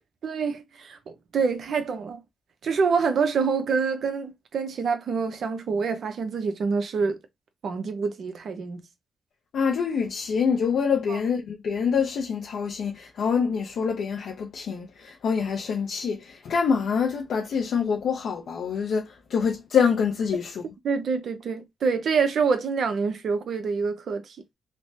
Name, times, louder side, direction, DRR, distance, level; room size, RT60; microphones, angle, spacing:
voice 1, 0.2-2.2 2.6-7.2 7.6-8.9 11.1-11.2 20.8-24.4, right 5 dB, 65° right, 0.6 m, -26 dB
voice 2, 9.5-20.6, left 6 dB, 75° left, 0.5 m, -26 dB
3.2 x 2.1 x 2.7 m
cardioid pair, 65°, 0 cm